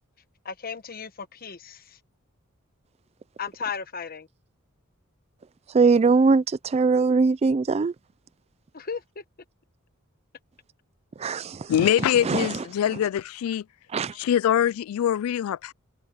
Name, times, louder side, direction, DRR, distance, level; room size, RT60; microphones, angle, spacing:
voice 1, 0.4-2.0 3.4-4.3 8.7-9.0, left 6 dB, 45° left, 1.1 m, -35 dB
voice 2, 5.7-7.9 11.2-11.7 12.2-12.5 13.9-14.1, right 4 dB, 30° right, 0.4 m, -21 dB
voice 3, 11.7-13.6 14.1-15.7, left 10 dB, 80° left, 0.3 m, -23 dB
head